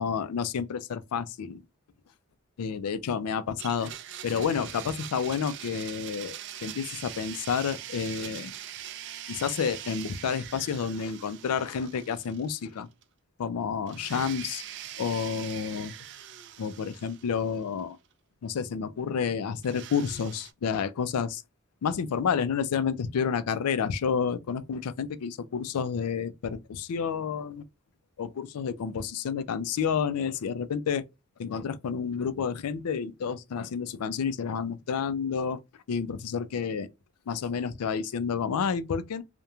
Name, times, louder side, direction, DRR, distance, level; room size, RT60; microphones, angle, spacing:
voice 1, 0.0-1.6 2.6-3.9 4.2-8.5 9.3-12.9 13.4-14.6 15.0-15.9 16.6-18.0 18.4-21.4 21.8-27.6 28.2-31.0 31.4-35.6 35.9-36.9 37.3-39.2, left 6 dB, 90° left, 0.4 m, -30 dB
Domestic sounds home sounds, 3.6-12.7 13.0-13.1 13.9-17.8 19.6-20.5, right 11 dB, 50° right, 0.3 m, -42 dB
2.9 x 2.1 x 2.3 m
head